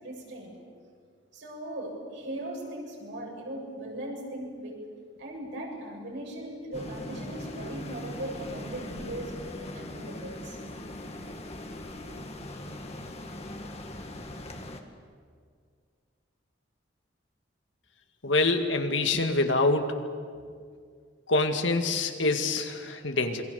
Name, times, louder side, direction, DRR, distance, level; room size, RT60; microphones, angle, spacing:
voice 1, 0.0-0.5 1.3-4.8 5.2-9.3 9.7-10.6 11.8-12.2, right 1 dB, 70° right, -1 dB, 7.6 m, -38 dB
sound 1, 6.7-14.8, left 1 dB, 35° left, 2.0 m, -40 dB
voice 2, 18.2-20.0 21.3-23.4, left 2 dB, 70° left, 5 dB, 2.2 m, -25 dB
27.0 x 23.5 x 7.1 m, 2.1 s
head